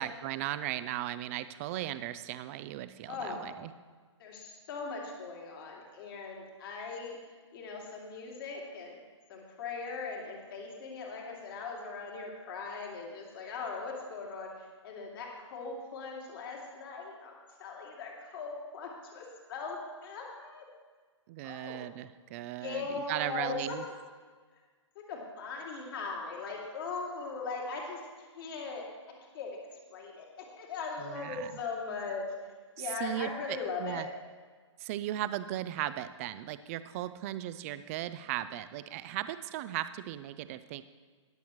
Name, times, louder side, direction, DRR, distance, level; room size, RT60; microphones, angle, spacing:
voice 1, 0.0-3.7 21.3-23.9 31.0-31.5 32.8-34.1 34.8-40.8, right 13 dB, 30° right, 13 dB, 0.5 m, -37 dB
voice 2, 3.1-3.4 4.2-7.2 7.5-9.0 9.3-17.3 17.6-20.6 21.4-21.8 22.6-23.9 24.9-28.9 29.3-32.3 32.8-34.0, left 4 dB, 50° left, -2 dB, 2.6 m, -39 dB
20.5 x 7.0 x 3.1 m, 1.5 s
hypercardioid pair, 135°, 16 cm